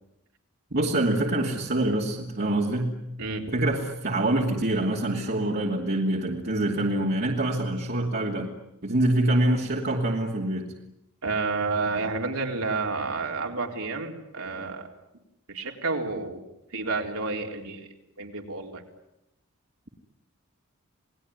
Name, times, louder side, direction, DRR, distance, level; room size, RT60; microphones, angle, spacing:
voice 1, 0.7-2.9 3.5-8.5 8.8-10.7, right 1 dB, 45° right, -2 dB, 2.8 m, -25 dB
voice 2, 11.2-14.9 15.5-16.4 16.7-17.9 18.2-18.8, right 3 dB, 70° right, 2 dB, 4.0 m, -30 dB
29.0 x 20.0 x 9.7 m, 0.86 s
head